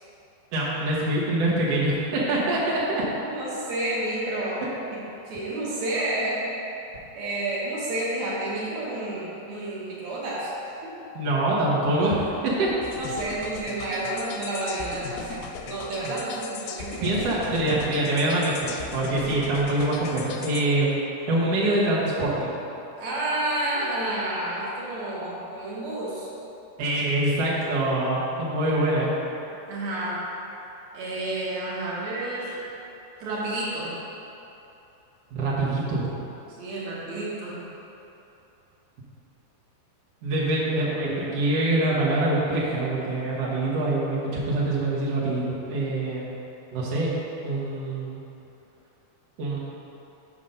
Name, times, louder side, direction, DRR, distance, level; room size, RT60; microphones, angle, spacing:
voice 1, 0.5-3.0 11.1-12.7 17.0-21.0 21.3-22.5 26.8-29.1 35.3-36.1 40.2-46.3 46.7-47.2 47.4-48.2 49.4-49.6, right 1 dB, 90° right, -7 dB, 1.3 m, -24 dB
voice 2, 3.3-5.0 5.3-6.6 7.1-10.5 10.8-11.0 13.0-17.2 23.0-26.3 29.7-30.2 30.9-32.6 33.2-33.9 36.6-37.6, right 1 dB, 65° right, -6 dB, 1.8 m, -30 dB
sound 1, 12.8-20.6, left 6 dB, 85° left, 2.1 m, -38 dB
6.0 x 5.6 x 5.2 m, 2.9 s
omnidirectional pair, 4.7 m